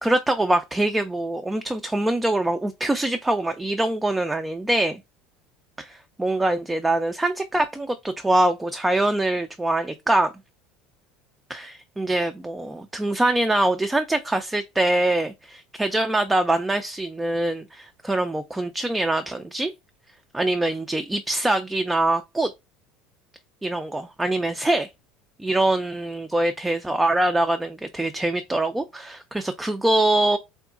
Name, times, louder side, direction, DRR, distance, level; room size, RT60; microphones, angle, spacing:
voice 1, 0.0-5.0 5.8-10.3 11.5-19.7 20.3-22.5 23.6-24.9 25.4-30.4, right 1 dB, 10° right, 0.4 m, -24 dB
3.7 x 2.1 x 2.4 m
figure-of-eight pair, 70°, 0 cm